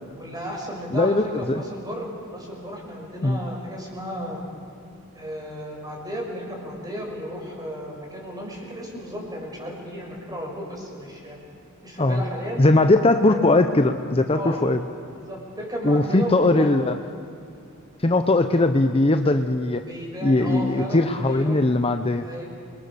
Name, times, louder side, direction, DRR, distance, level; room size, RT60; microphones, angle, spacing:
voice 1, 0.2-4.5 5.1-11.4 11.8-12.6 13.2-13.7 14.3-14.7 15.1-16.7 19.8-21.6 22.2-22.5, equal, 20° right, -1 dB, 6.0 m, -34 dB
voice 2, 0.9-1.6 3.2-3.4 12.0-12.2 12.6-14.8 15.8-16.9 18.0-19.8 20.2-22.2, left 2 dB, 25° left, 7 dB, 0.7 m, -20 dB
29.0 x 22.5 x 6.9 m, 2.5 s
head